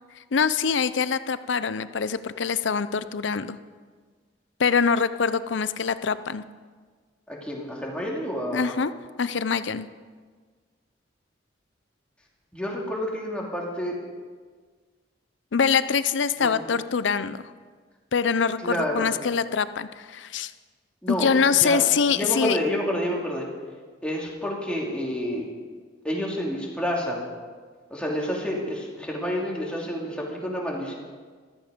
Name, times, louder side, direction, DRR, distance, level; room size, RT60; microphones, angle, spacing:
voice 1, 0.3-3.6 4.6-6.4 8.5-8.9 9.2-9.9 15.5-17.4 18.1-20.5 21.1-22.6, left 6 dB, 70° left, 14 dB, 0.6 m, -24 dB
voice 2, 7.3-8.8 12.5-14.0 16.4-16.6 18.6-19.1 21.0-23.5 24.0-25.5 26.0-27.3 27.9-30.9, equal, 5° left, -3 dB, 2.7 m, -29 dB
14.5 x 13.5 x 5.1 m, 1.5 s
head